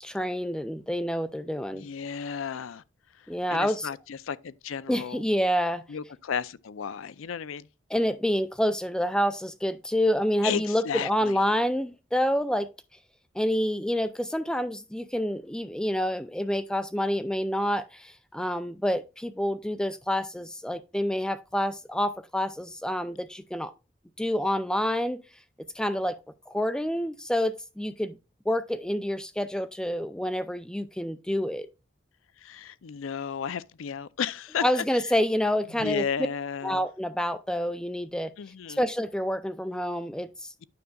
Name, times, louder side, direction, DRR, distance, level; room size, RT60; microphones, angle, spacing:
voice 1, 0.0-1.9 3.3-3.9 4.9-5.8 7.9-12.7 13.4-23.7 24.2-25.2 25.8-26.2 26.5-28.1 28.5-31.7 34.6-36.0 36.6-38.3 38.8-40.5, equal, 5° left, 0.3 m, -28 dB
voice 2, 1.7-2.8 3.5-5.2 5.9-7.7 10.4-11.4 32.4-34.8 35.8-36.8 38.4-38.8, left 7 dB, 85° left, 0.4 m, -33 dB
9.5 x 6.3 x 2.3 m
head